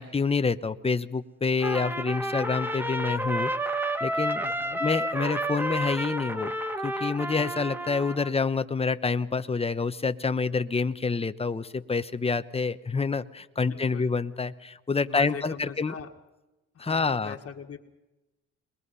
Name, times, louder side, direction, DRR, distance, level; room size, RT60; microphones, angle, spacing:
voice 1, 0.0-4.4 4.8-6.5 6.8-15.9 16.8-17.3, left 4 dB, 20° left, 11 dB, 1.0 m, -27 dB
Trumpet, 1.6-8.3, right 1 dB, 5° right, 1.3 m, -30 dB
voice 2, 4.4-4.8 13.7-14.1 15.0-16.1 16.7-17.8, left 7 dB, 50° left, 4 dB, 1.8 m, -41 dB
22.0 x 22.0 x 5.6 m, 1.0 s
cardioid pair, 90°, 30 cm